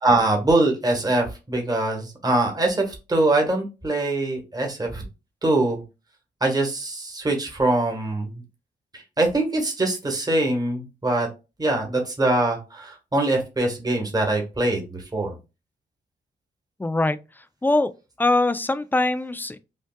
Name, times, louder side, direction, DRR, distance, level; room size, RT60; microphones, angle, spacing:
voice 1, 0.0-5.0 5.4-5.8 6.4-8.4 9.2-11.3 11.6-15.3, right 2 dB, 20° right, 1.3 m, -23 dB
voice 2, 16.8-17.2 17.6-17.9 18.2-19.6, left 2 dB, 10° left, 0.3 m, -22 dB
5.3 x 2.3 x 2.2 m
cardioid pair, 75°, 19 cm